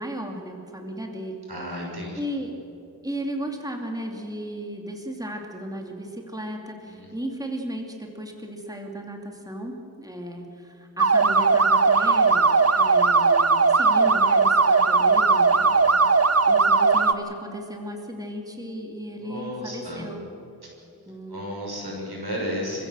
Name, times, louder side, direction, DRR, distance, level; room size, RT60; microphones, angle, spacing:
voice 1, 0.0-1.4 1.7-1.9 2.2-2.5 3.0-15.8 16.1-16.2 16.5-20.3 21.1-21.4, right 1 dB, 10° right, 1 dB, 2.7 m, -35 dB
voice 2, 1.5-2.2 6.8-7.1 15.6-16.0 19.2-20.1 21.3-22.8, equal, 80° right, -2 dB, 6.3 m, -33 dB
sound 1, 11.0-17.1, right 4 dB, 40° right, 0.9 m, -18 dB
27.5 x 15.5 x 7.6 m, 2.8 s
wide cardioid pair, 55°, 38 cm